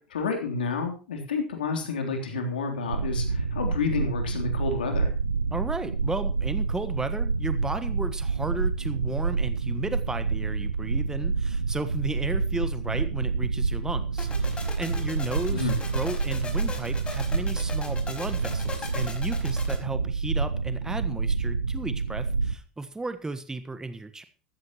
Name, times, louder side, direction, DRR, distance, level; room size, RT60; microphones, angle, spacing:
voice 1, 0.1-5.1 15.5-15.8, left 4 dB, 80° left, 3 dB, 3.4 m, -30 dB
sound 1, 2.9-22.5, right 4 dB, 90° right, 0.6 m, -28 dB
voice 2, 5.5-24.2, right 2 dB, 10° right, 11 dB, 1.3 m, -34 dB
sound 2, 14.2-19.8, left 4 dB, 20° left, 5.1 m, -39 dB
14.0 x 14.0 x 3.0 m, 0.36 s
figure-of-eight pair, 75°, 5 cm